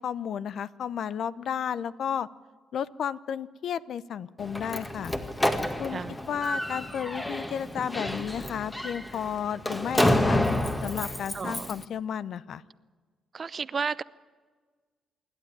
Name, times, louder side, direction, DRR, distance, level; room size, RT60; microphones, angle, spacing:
voice 1, 0.0-2.3 2.7-5.1 5.8-10.4 10.8-12.6, left 8 dB, 65° left, 16 dB, 0.7 m, -33 dB
Slam, 4.4-11.8, left 1 dB, 15° left, 1.8 m, -29 dB
voice 2, 11.3-11.7 13.3-14.0, right 5 dB, 40° right, 18 dB, 0.5 m, -32 dB
26.0 x 12.0 x 9.8 m, 1.5 s
cardioid pair, 90°, 0 cm